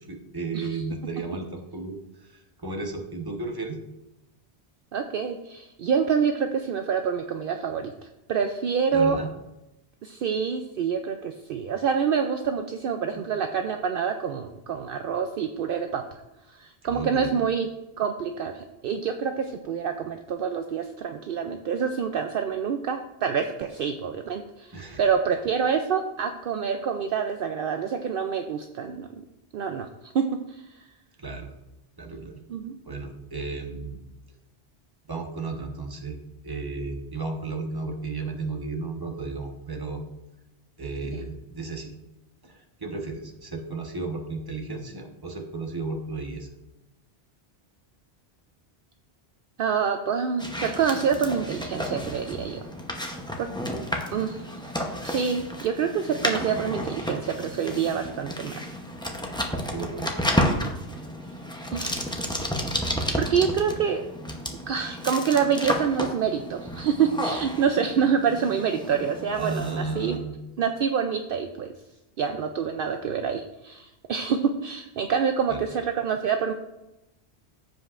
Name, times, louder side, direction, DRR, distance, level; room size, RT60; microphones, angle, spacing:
voice 1, 0.1-3.8 8.9-9.3 13.2-13.3 16.8-17.3 24.7-25.0 31.2-31.5 32.0-32.4 32.8-34.0 35.1-36.2 36.4-40.0 40.8-41.9 42.4-46.5 59.7-60.1 69.3-70.3 75.5-75.6, right 3 dB, 20° right, 2 dB, 1.0 m, -34 dB
voice 2, 4.9-7.9 8.3-9.2 10.0-16.0 16.5-17.7 18.0-29.1 29.5-30.2 30.5-30.6 32.5-32.7 49.6-52.6 53.1-53.5 54.1-54.5 55.0-58.6 61.7-62.1 63.1-64.0 64.7-70.2 70.6-71.7 72.2-76.5, right 6 dB, 65° right, 6 dB, 0.7 m, -27 dB
sound 1, 50.4-70.2, equal, 5° left, 0.7 m, -32 dB
15.0 x 5.2 x 2.5 m, 0.93 s
omnidirectional pair, 1.1 m